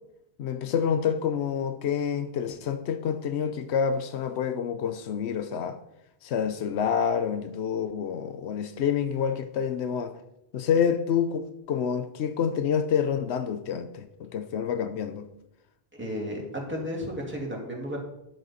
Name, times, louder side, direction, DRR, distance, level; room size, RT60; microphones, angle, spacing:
voice 1, 0.4-5.8 6.2-10.1 10.5-15.3, left 7 dB, 90° left, 1.0 m, -28 dB
voice 2, 15.9-18.0, equal, 10° right, 2.3 m, -33 dB
9.2 x 8.9 x 4.2 m
omnidirectional pair, 1.1 m